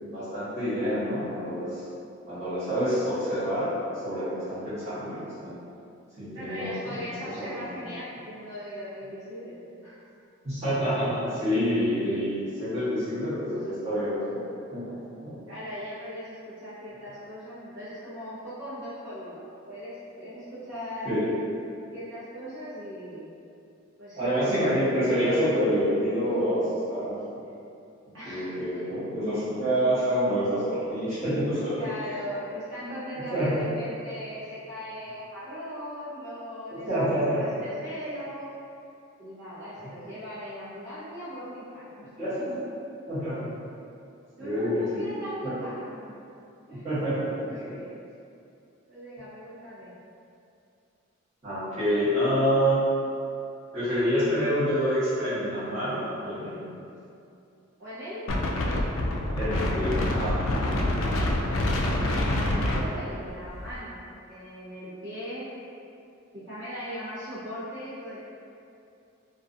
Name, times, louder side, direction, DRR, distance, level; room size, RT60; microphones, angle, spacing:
voice 1, 0.0-1.8 2.3-3.7 4.0-5.6 6.2-7.0 7.3-7.6 10.4-14.4 14.7-14.9 15.2-15.4 21.0-21.2 24.2-27.1 28.2-31.8 32.8-32.9 33.3-33.7 36.7-37.5 42.2-42.6 43.1-43.5 44.4-45.1 45.4-45.6 46.8-47.3 47.6-47.8 51.4-52.8 53.7-56.8 59.4-60.4, equal, 30° right, -14 dB, 1.0 m, -27 dB
voice 2, 6.3-10.0 11.5-11.7 15.5-21.2 21.9-23.3 24.0-24.6 28.1-28.6 31.8-38.5 39.2-42.1 43.4-43.5 43.8-43.9 44.4-46.2 46.7-47.1 47.4-48.0 48.9-49.9 51.8-52.1 57.8-58.3 58.6-58.9 62.5-64.0 64.3-65.5 66.3-68.2, equal, 60° right, -12 dB, 0.8 m, -39 dB
Wind, 58.3-63.8, left 1 dB, 70° left, 0.3 m, -26 dB
2.5 x 2.3 x 2.5 m, 2.6 s
head